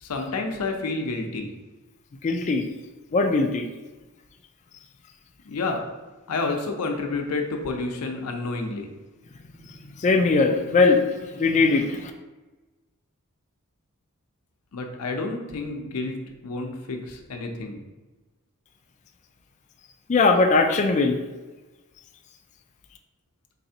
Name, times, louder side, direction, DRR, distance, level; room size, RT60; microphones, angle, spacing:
voice 1, 0.0-1.5 5.5-5.8 6.3-8.9 14.7-17.8, left 3 dB, 90° left, 3 dB, 0.6 m, -29 dB
voice 2, 2.2-2.6 3.1-3.6 10.0-11.0 11.4-12.1 20.1-21.2, left 3 dB, 30° left, 4 dB, 0.3 m, -20 dB
4.0 x 3.3 x 2.7 m, 1.2 s
head